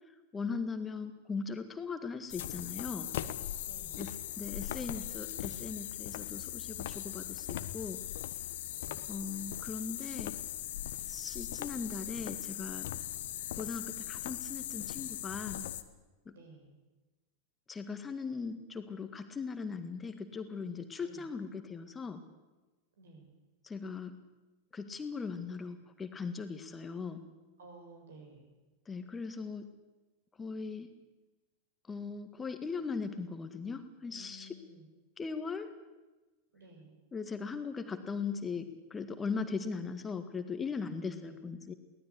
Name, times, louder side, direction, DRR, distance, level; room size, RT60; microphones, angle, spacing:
voice 1, 0.3-3.1 4.0-8.0 9.1-10.4 11.1-12.9 13.5-15.7 16.3-16.4 17.7-22.2 23.6-24.2 24.7-27.2 28.9-29.7 30.4-30.9 31.9-34.5 35.2-35.7 37.1-41.7, left 5 dB, 15° left, 8 dB, 1.7 m, -39 dB
sound 1, 2.3-15.8, left 13 dB, 55° left, 1.3 m, -39 dB
voice 2, 2.9-4.1 8.7-9.2 16.3-16.8 21.0-21.3 23.0-23.3 27.6-28.5 34.1-34.9 36.5-37.0 41.0-41.4, right 2 dB, 65° right, 4 dB, 6.7 m, -55 dB
23.5 x 18.0 x 8.4 m, 1.1 s
figure-of-eight pair, 90°, 0 cm